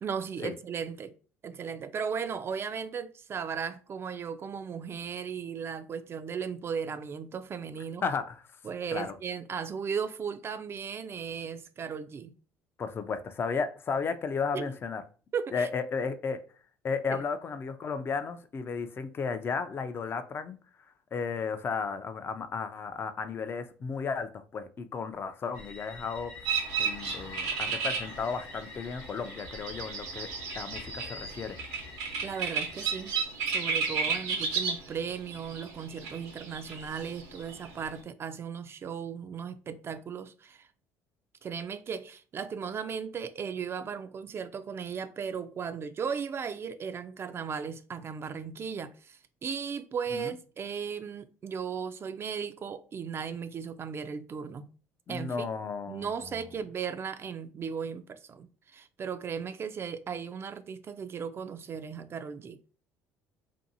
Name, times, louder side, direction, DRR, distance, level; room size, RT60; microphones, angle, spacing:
voice 1, 0.0-1.1 1.4-8.0 8.6-12.3 14.5-14.7 15.3-15.7 17.1-17.2 32.2-33.1 33.4-40.7 41.4-54.7 55.1-55.5 55.9-58.5 58.7-62.6, right 6 dB, 40° right, 0.3 m, -36 dB
voice 2, 8.0-8.4 8.9-9.2 12.8-15.0 15.5-16.4 16.8-20.6 21.1-26.3 26.8-30.3 30.5-31.6 50.1-50.3 55.1-56.1, left 5 dB, 35° left, 0.4 m, -34 dB
sound 1, 25.5-33.2, left 3 dB, 80° left, 0.9 m, -47 dB
sound 2, 26.4-37.7, right 5 dB, 85° right, 0.8 m, -33 dB
2.6 x 2.6 x 2.6 m
supercardioid pair, 75°, 7 cm